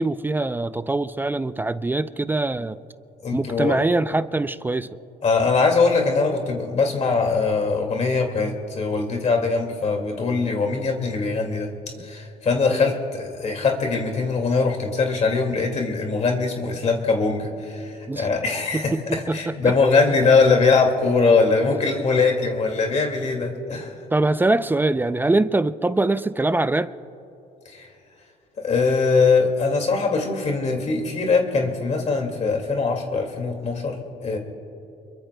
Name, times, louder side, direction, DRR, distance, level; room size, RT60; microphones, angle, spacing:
voice 1, 0.0-2.8 3.3-5.0 12.7-12.9 18.1-18.3 18.7-19.7 24.1-26.9, right 2 dB, 10° right, 13 dB, 0.4 m, -23 dB
voice 2, 3.2-3.8 5.2-11.7 12.0-23.9 27.7-27.9 28.6-34.4, left 4 dB, 40° left, 2 dB, 2.2 m, -22 dB
28.5 x 22.5 x 2.2 m, 2.9 s
cardioid pair, 110°, 17 cm